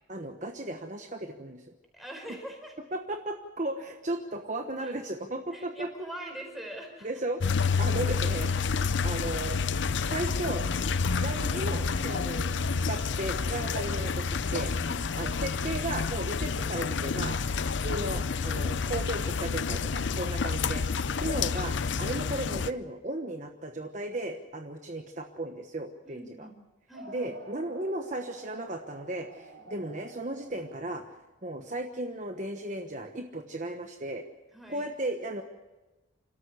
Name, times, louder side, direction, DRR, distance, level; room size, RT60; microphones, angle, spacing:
voice 1, 0.1-1.6 2.9-5.9 7.0-7.4 7.8-8.5 9.0-9.6 10.1-10.7 11.2-12.5 12.9-14.7 15.2-17.4 17.8-20.8 21.1-26.5 27.1-31.0 31.4-34.2 34.7-35.4, right 1 dB, 40° right, 4 dB, 1.1 m, -35 dB
voice 2, 1.9-2.8 4.8-4.9 5.5-7.1 14.8-15.1 26.0-26.6 26.9-27.4 34.5-34.9, right 1 dB, ahead, 1 dB, 4.6 m, -43 dB
sound 1, 7.4-22.7, left 5 dB, 70° left, 0.6 m, -29 dB
sound 2, 26.9-31.5, right 2 dB, 80° right, 4.3 m, -49 dB
28.0 x 13.0 x 8.1 m, 1.1 s
head